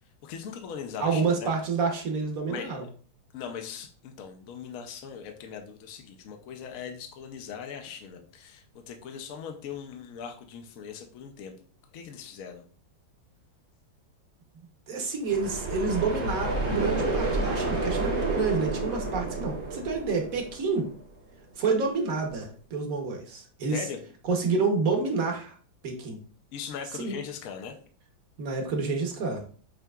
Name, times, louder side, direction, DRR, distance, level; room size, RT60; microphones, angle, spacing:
voice 1, 0.2-1.5 2.5-2.8 3.3-11.5 11.9-12.6 23.7-24.0 26.5-27.8, left 7 dB, 70° left, 4 dB, 0.8 m, -40 dB
voice 2, 1.0-2.8 14.9-20.9 21.6-23.9 24.2-25.5 25.8-26.2 27.0-27.2 28.4-29.5, right 4 dB, 55° right, 2 dB, 1.2 m, -28 dB
sound 1, 15.2-21.0, right 2 dB, 90° right, 2.8 m, -30 dB
7.7 x 2.8 x 2.3 m, 0.43 s
omnidirectional pair, 2.1 m